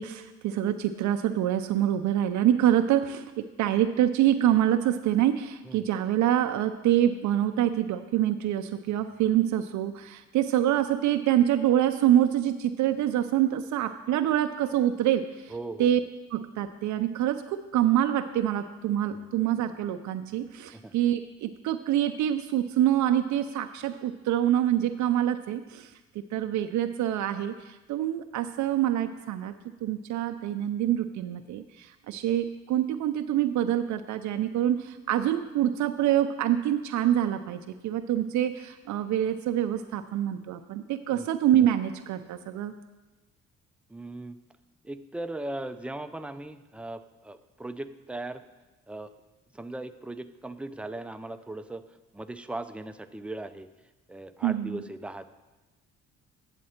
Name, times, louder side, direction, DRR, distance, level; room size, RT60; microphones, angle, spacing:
voice 1, 0.0-15.5 15.8-16.0 16.3-25.9 26.3-42.7 54.4-54.8, right 11 dB, 75° right, 8 dB, 0.5 m, -26 dB
voice 2, 15.5-15.9 20.7-20.9 41.1-41.3 43.9-44.4 44.8-48.4 48.9-49.1 49.5-51.8 52.1-53.7 54.1-55.3, right 2 dB, 5° right, 9 dB, 0.4 m, -38 dB
8.7 x 7.4 x 4.3 m, 1.1 s
cardioid pair, 90°, 30 cm